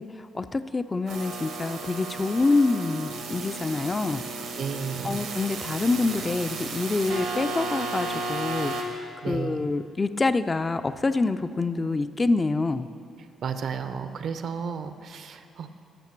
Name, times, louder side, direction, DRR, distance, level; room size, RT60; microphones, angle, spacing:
voice 1, 0.0-4.5 5.0-12.9, left 3 dB, 25° left, 11 dB, 0.3 m, -26 dB
sound 1, 1.1-8.8, right 3 dB, 90° right, 1.2 m, -34 dB
voice 2, 4.6-5.2 9.2-9.7 13.4-15.7, right 6 dB, 60° right, 10 dB, 0.5 m, -33 dB
13.0 x 5.9 x 4.5 m, 2.4 s
cardioid pair, 90°, 0 cm